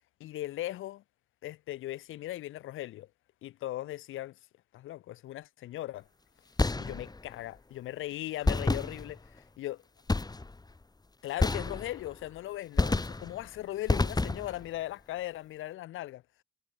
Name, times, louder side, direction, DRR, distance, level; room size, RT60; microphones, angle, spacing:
voice 1, 0.2-1.0 1.4-3.1 3.4-4.3 4.7-6.1 6.8-9.8 11.2-16.2, left 15 dB, 85° left, 4.6 m, -38 dB
sound 1, 6.6-7.3 8.4-9.4 10.1-10.7 11.4-12.2 12.8-13.5 13.9-14.7, left 3 dB, 20° left, 5.2 m, -29 dB
cardioid pair, 90°, 20 cm